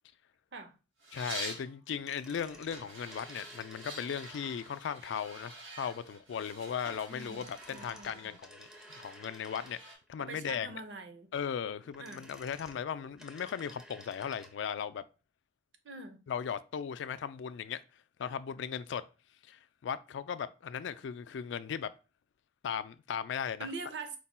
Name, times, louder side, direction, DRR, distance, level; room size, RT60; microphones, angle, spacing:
sound 1, 1.0-1.7 2.7-10.0, right 2 dB, 85° right, 2.2 m, -47 dB
voice 1, 1.1-8.7 9.0-10.8 11.3-15.0 16.3-17.8 18.2-19.0 19.5-21.9 22.6-23.7, left 7 dB, 70° left, 0.3 m, -37 dB
sound 2, 1.9-4.8 7.2-10.1 11.7-14.6 14.8-14.9, equal, 5° right, 0.4 m, -54 dB
voice 2, 7.1-7.4 7.7-8.3 10.3-11.3 12.0-12.3 15.8-16.2 23.6-24.2, right 3 dB, 65° right, 0.7 m, -43 dB
4.6 x 2.2 x 4.1 m
head